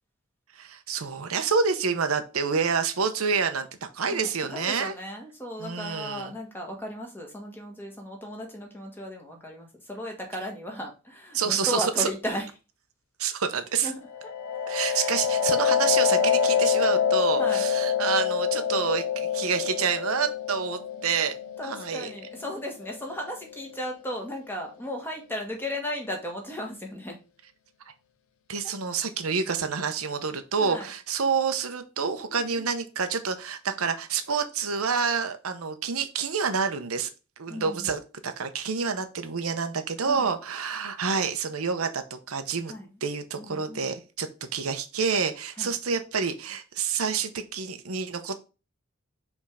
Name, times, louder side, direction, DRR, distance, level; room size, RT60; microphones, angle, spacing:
voice 1, 0.5-4.9 5.6-6.3 11.3-12.1 13.2-13.9 14.7-21.3 21.6-22.1 28.5-37.1 37.4-42.7 43.0-48.4, right 5 dB, 85° right, 8 dB, 0.8 m, -28 dB
voice 2, 4.0-12.5 13.8-14.0 14.8-15.2 17.3-17.6 21.6-27.2 28.6-28.7 30.6-30.9 32.3-32.7 37.5-37.9 40.1-40.3 42.7-42.9 43.4-43.9 45.6-45.7, equal, 10° left, 1 dB, 1.6 m, -35 dB
sound 1, 14.1-23.6, left 7 dB, 75° left, 0.8 m, -26 dB
5.4 x 3.6 x 4.9 m, 0.31 s
head